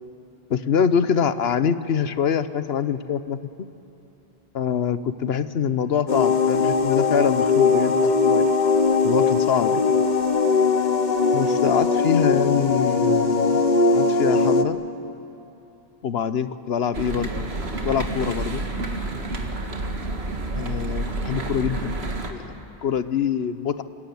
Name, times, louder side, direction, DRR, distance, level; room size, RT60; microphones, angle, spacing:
voice 1, 0.5-3.4 4.5-8.5 9.0-9.9 11.3-13.6 13.9-14.8 16.0-17.5 17.8-18.6 20.5-22.0 22.3-22.6 22.8-23.8, left 7 dB, 80° left, 13 dB, 1.1 m, -24 dB
sound 1, 6.1-14.6, left 4 dB, 50° left, 1.2 m, -20 dB
sound 2, 16.9-22.3, right 2 dB, 85° right, 2.2 m, -29 dB
26.0 x 20.0 x 9.4 m, 2.8 s
omnidirectional pair, 1.0 m